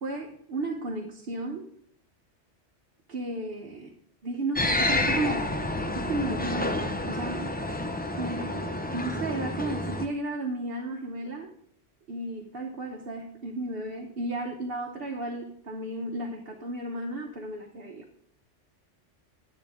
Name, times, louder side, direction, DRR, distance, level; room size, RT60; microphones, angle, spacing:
voice 1, 0.0-1.7 3.1-3.9 4.2-5.5 5.9-7.4 8.1-8.6 8.9-11.5 12.1-18.0, right 2 dB, 55° right, 0 dB, 1.1 m, -33 dB
sound 1, 4.6-10.1, left 1 dB, 15° left, 0.3 m, -29 dB
10.5 x 7.7 x 3.6 m, 0.66 s
omnidirectional pair, 1.2 m